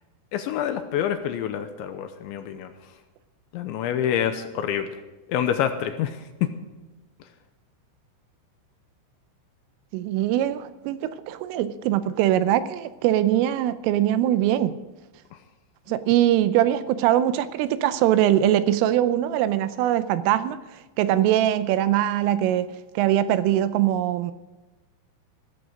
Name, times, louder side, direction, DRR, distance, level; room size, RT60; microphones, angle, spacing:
voice 1, 0.3-2.7 3.5-4.9 5.3-6.3 15.3-15.4, left 9 dB, 80° left, 8 dB, 2.9 m, -27 dB
voice 2, 9.9-14.8 15.9-20.6 21.0-22.7 23.0-24.3, right 12 dB, 80° right, 13 dB, 3.2 m, -22 dB
16.0 x 14.5 x 5.0 m, 1.1 s
omnidirectional pair, 5.9 m